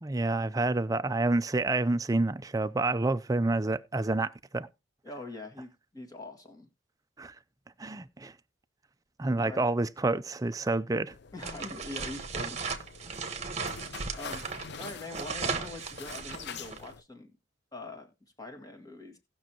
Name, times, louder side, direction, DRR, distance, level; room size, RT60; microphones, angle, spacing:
voice 1, 0.0-4.7 7.2-7.3 7.8-8.3 9.2-11.1, right 2 dB, 20° right, 0.4 m, -28 dB
voice 2, 5.0-6.7 9.4-9.6 11.3-12.6 14.1-14.4 14.8-17.3 17.7-18.1 18.4-19.2, left 2 dB, 20° left, 2.0 m, -43 dB
sound 1, 11.1-17.0, left 6 dB, 60° left, 0.6 m, -46 dB
sound 2, 11.4-16.9, right 4 dB, 35° right, 1.2 m, -36 dB
18.0 x 6.3 x 2.9 m
head